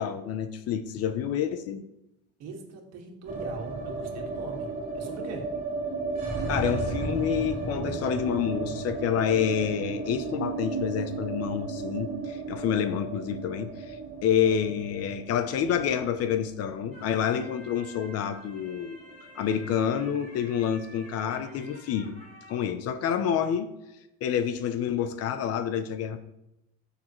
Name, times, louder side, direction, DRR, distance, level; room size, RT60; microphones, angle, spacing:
voice 1, 0.0-1.9 6.5-19.0 19.3-22.2 22.5-23.7 24.2-26.2, left 8 dB, 45° left, 10 dB, 0.7 m, -28 dB
voice 2, 2.4-5.4, right 4 dB, 50° right, 1 dB, 2.0 m, -41 dB
sound 1, 3.3-19.4 19.6-19.7 20.0-20.7, right 3 dB, 25° right, 2.5 m, -34 dB
sound 2, 16.9-22.6, equal, 20° left, 2.1 m, -50 dB
13.5 x 6.6 x 3.1 m, 0.90 s
cardioid pair, 160°, 33 cm